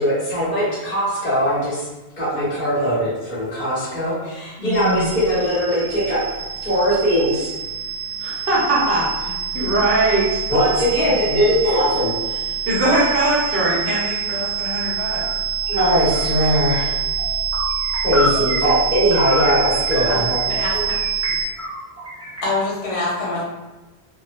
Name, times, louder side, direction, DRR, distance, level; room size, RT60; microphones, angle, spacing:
voice 1, 0.0-1.9 2.2-6.2 6.6-7.5 10.5-12.5 15.7-16.9 18.0-20.4, equal, 45° left, -10 dB, 1.2 m, -20 dB
voice 2, 4.6-5.0 8.2-10.4 12.7-15.2, right 2 dB, 65° right, -7 dB, 1.1 m, -21 dB
sound 1, 4.7-21.4, right 8 dB, 40° right, 0.8 m, -26 dB
sound 2, 15.1-15.4 15.6-22.4, left 1 dB, 20° right, 0.5 m, -28 dB
voice 3, 22.4-23.4, left 2 dB, 80° left, -6 dB, 1.2 m, -24 dB
2.9 x 2.0 x 2.4 m, 1.1 s
omnidirectional pair, 1.1 m